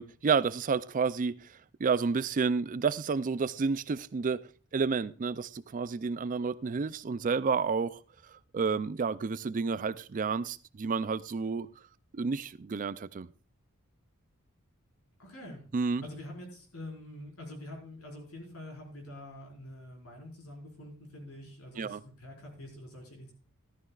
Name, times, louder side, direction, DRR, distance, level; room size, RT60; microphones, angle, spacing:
voice 1, 0.0-4.4 4.7-11.7 12.1-13.3 15.7-16.0 21.8-22.0, right 5 dB, 40° right, 0.4 m, -30 dB
voice 2, 15.2-15.6 16.0-23.3, left 1 dB, 85° left, 4.9 m, -46 dB
14.5 x 12.5 x 2.4 m
head